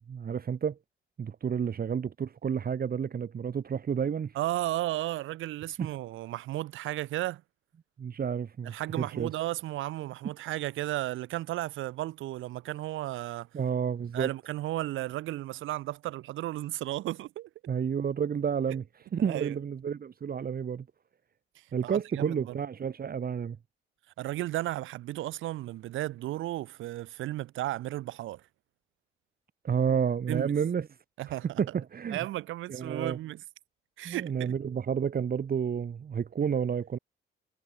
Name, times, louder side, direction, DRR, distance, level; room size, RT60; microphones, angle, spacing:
voice 1, 0.1-0.8 1.2-4.4 5.8-5.9 8.0-9.3 13.5-14.3 17.7-18.8 19.1-20.9 21.7-23.6 29.6-30.9 31.6-32.3 32.7-33.2 34.0-37.0, right 7 dB, 50° right, 4.0 m, -30 dB
voice 2, 4.3-7.4 8.6-13.5 14.1-17.5 19.3-19.6 21.8-22.6 24.2-28.4 30.3-30.5 31.2-31.6 32.1-33.4 34.0-34.5, right 15 dB, 85° right, 1.7 m, -34 dB
cardioid pair, 90°, 20 cm